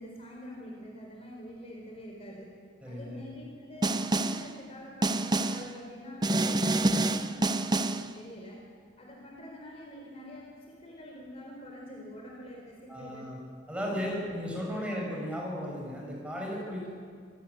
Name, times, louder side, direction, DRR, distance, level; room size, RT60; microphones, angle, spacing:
voice 1, 0.0-2.5 2.9-8.6 9.0-13.2 13.7-14.0 14.6-14.9, equal, 30° left, -1 dB, 4.1 m, -45 dB
voice 2, 2.8-3.2 12.9-13.4 13.7-16.9, equal, 5° right, -2 dB, 7.0 m, -35 dB
Snare drum, 3.8-4.5 5.0-5.7 6.2-8.1, right 2 dB, 20° right, 0.7 m, -27 dB
26.0 x 18.5 x 8.7 m, 2.1 s
head